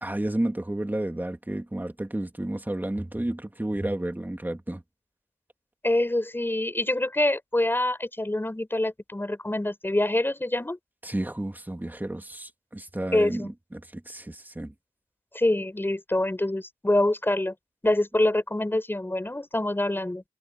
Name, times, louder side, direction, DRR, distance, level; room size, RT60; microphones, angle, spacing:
voice 1, 0.0-4.8 11.0-14.7, right 1 dB, 15° right, 2.6 m, -31 dB
voice 2, 5.8-10.8 13.1-13.5 15.3-17.5 17.8-20.2, left 1 dB, 15° left, 5.6 m, -25 dB
wide cardioid pair, 85°, 14 cm